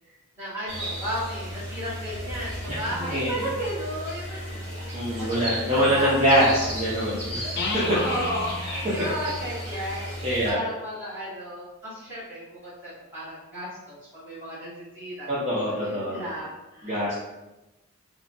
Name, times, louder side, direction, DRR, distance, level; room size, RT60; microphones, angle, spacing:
voice 1, 0.4-5.5 5.7-6.1 6.4-6.7 7.9-15.4 15.6-17.1, equal, 10° right, -12 dB, 1.4 m, -34 dB
sound 1, 0.7-10.5, equal, 50° right, 1.3 m, -35 dB
voice 2, 3.1-3.5 4.9-7.9 10.2-10.6 15.3-16.2 16.8-17.1, equal, 30° right, -9 dB, 0.6 m, -24 dB
sound 2, 7.6-11.2, left 3 dB, 45° left, 0.4 m, -35 dB
3.1 x 2.1 x 2.5 m, 1.0 s
head